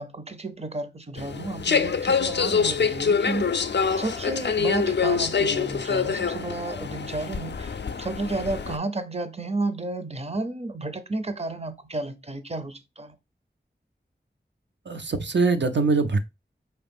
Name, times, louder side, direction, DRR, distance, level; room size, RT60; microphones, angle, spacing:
voice 1, 0.0-3.7 4.0-13.2, right 2 dB, 35° right, 0.6 m, -32 dB
sound 1, 1.2-8.8, left 6 dB, 70° left, 0.4 m, -25 dB
voice 2, 14.9-16.2, right 3 dB, 70° right, 0.6 m, -23 dB
5.0 x 3.0 x 3.4 m
wide cardioid pair, 50°, 19 cm